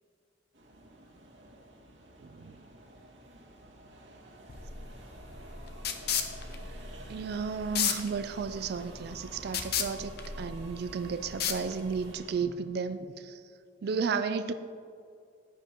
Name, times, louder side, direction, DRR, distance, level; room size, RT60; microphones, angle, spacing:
sound 1, 0.5-12.4, right 1 dB, 90° right, 1.9 m, -51 dB
voice 1, 2.2-2.6 7.1-13.4 13.8-14.5, right 5 dB, 60° right, 10 dB, 0.4 m, -33 dB
sound 2, 4.5-12.1, left 7 dB, 60° left, 0.8 m, -35 dB
14.0 x 9.5 x 3.0 m, 2.5 s
head